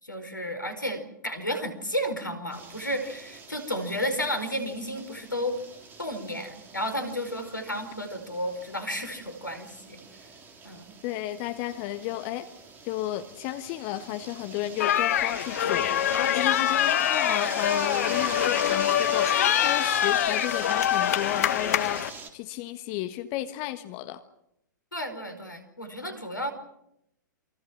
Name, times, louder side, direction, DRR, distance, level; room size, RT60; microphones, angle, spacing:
voice 1, 0.0-5.6 6.0-10.0 10.6-10.9 24.9-26.5, equal, 85° left, 5.0 m, -32 dB
sound 1, 2.5-22.3, right 4 dB, 20° right, 3.5 m, -42 dB
voice 2, 11.0-12.5 12.8-24.2, left 14 dB, 35° left, 1.4 m, -33 dB
sound 2, 14.8-22.1, left 11 dB, 50° left, 1.3 m, -24 dB
29.0 x 24.5 x 6.2 m
figure-of-eight pair, 110°, 10 cm